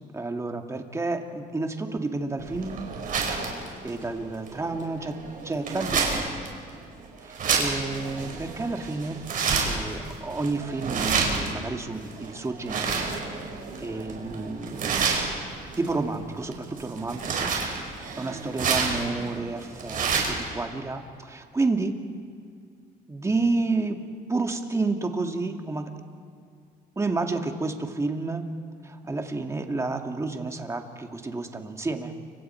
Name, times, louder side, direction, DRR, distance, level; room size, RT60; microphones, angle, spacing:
voice 1, 0.1-2.9 3.8-5.2 5.4-6.4 7.2-9.2 9.6-13.0 13.3-13.5 13.8-14.8 15.8-17.5 17.9-22.0 23.1-24.0 24.3-25.9 27.0-28.5 28.8-32.1, right 3 dB, 15° right, 4 dB, 2.0 m, -30 dB
sound 1, 2.4-20.5, right 5 dB, 55° right, 5.2 m, -30 dB
29.5 x 25.5 x 4.5 m, 2.3 s
cardioid pair, 110°, 17 cm